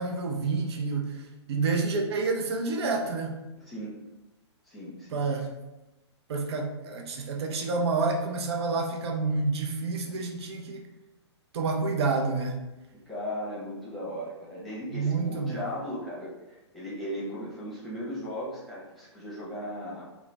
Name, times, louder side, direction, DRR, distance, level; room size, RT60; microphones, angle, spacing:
voice 1, 0.0-3.4 5.1-5.5 6.3-10.9 11.5-12.6 14.9-15.6, right 4 dB, 60° right, 2 dB, 0.5 m, -29 dB
voice 2, 3.7-4.0 4.7-5.2 12.9-20.1, equal, ahead, -9 dB, 0.8 m, -37 dB
2.4 x 2.0 x 3.2 m, 0.99 s
hypercardioid pair, 135°, 15 cm